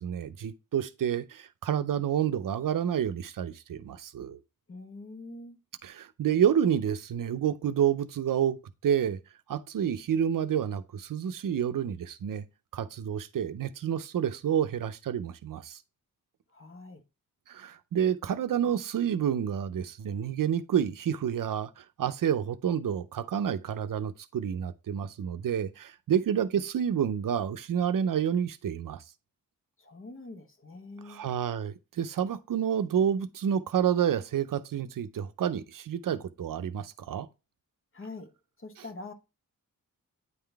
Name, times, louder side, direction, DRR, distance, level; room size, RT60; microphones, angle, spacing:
voice 1, 0.0-4.4 5.8-8.6 8.8-9.2 9.5-12.4 12.7-15.8 17.5-29.0 31.0-37.3, right 9 dB, 70° right, 0.6 m, -29 dB
voice 2, 4.7-5.6 16.5-17.0 29.8-31.2 37.9-38.3 38.6-39.1, left 2 dB, 40° left, 1.0 m, -44 dB
9.5 x 3.8 x 3.4 m
wide cardioid pair, 135°, 34 cm